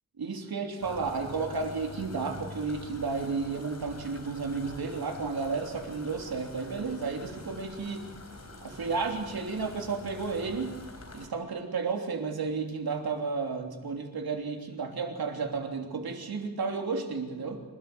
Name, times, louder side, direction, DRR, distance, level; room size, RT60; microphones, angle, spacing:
voice 1, 0.2-8.1 8.6-10.8 11.1-17.6, right 4 dB, 85° right, 3 dB, 3.3 m, -32 dB
fuente agua, 0.8-11.3, left 2 dB, 45° left, 4.3 m, -46 dB
27.0 x 13.0 x 8.0 m, 1.3 s
wide cardioid pair, 120°, 36 cm